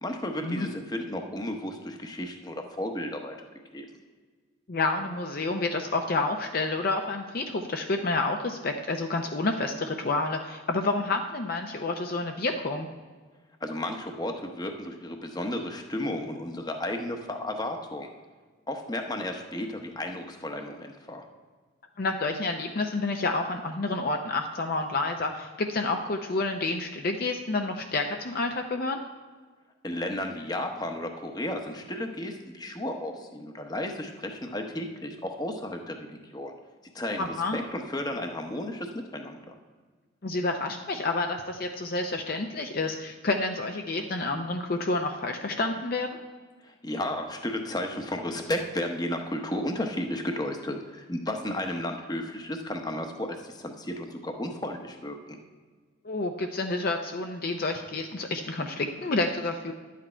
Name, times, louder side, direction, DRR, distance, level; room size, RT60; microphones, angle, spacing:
voice 1, 0.0-3.5 3.7-3.9 13.6-18.1 18.7-21.2 29.8-36.5 36.9-39.5 46.6-55.4, left 1 dB, 20° left, 4 dB, 0.8 m, -33 dB
voice 2, 4.7-12.9 22.0-29.0 37.2-37.6 40.2-46.1 56.0-59.7, left 3 dB, 45° left, 4 dB, 0.6 m, -29 dB
11.5 x 8.4 x 4.4 m, 1.5 s
head